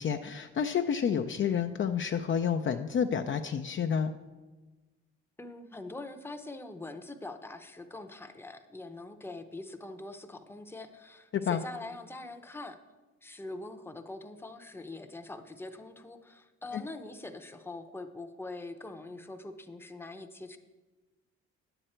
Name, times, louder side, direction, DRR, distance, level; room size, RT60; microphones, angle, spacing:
voice 1, 0.0-4.1 11.3-11.6 16.7-16.8, left 7 dB, 40° left, 6 dB, 0.5 m, -29 dB
voice 2, 5.4-12.8 13.2-20.6, left 2 dB, 10° left, 6 dB, 0.7 m, -43 dB
10.0 x 8.0 x 4.4 m, 1.2 s
cardioid pair, 90°, 30 cm